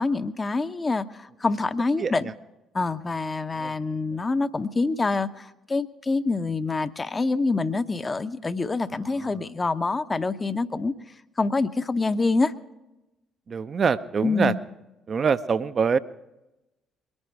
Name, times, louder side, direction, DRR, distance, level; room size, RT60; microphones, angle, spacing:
voice 1, 0.0-2.3 2.7-10.9 11.4-12.5 14.2-14.6, left 3 dB, 25° left, 10 dB, 0.7 m, -26 dB
voice 2, 2.0-2.3 3.6-3.7 9.0-9.5 13.5-14.5 15.1-16.0, right 6 dB, 40° right, 14 dB, 0.6 m, -25 dB
22.5 x 9.8 x 4.6 m, 0.97 s
figure-of-eight pair, 50°, 0 cm